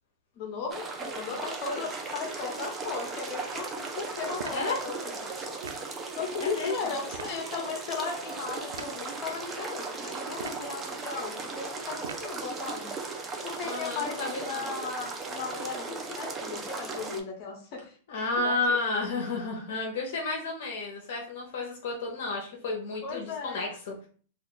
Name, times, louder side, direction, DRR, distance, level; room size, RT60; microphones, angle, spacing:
voice 1, 0.4-5.1 6.2-12.9 13.4-18.8 23.0-23.6, left 5 dB, 45° left, 2 dB, 1.0 m, -36 dB
sound 1, 0.7-17.2, right 4 dB, 20° right, 0.5 m, -37 dB
sound 2, 4.4-4.7 5.6-5.9 7.1-7.4 8.7-9.0 10.3-10.7 12.0-12.4, right 6 dB, 90° right, 0.4 m, -41 dB
voice 2, 4.5-4.8 6.4-6.9 13.6-14.7 18.1-24.1, left 3 dB, 70° left, 0 dB, 0.7 m, -32 dB
2.4 x 2.3 x 3.7 m, 0.43 s
hypercardioid pair, 140°, 0 cm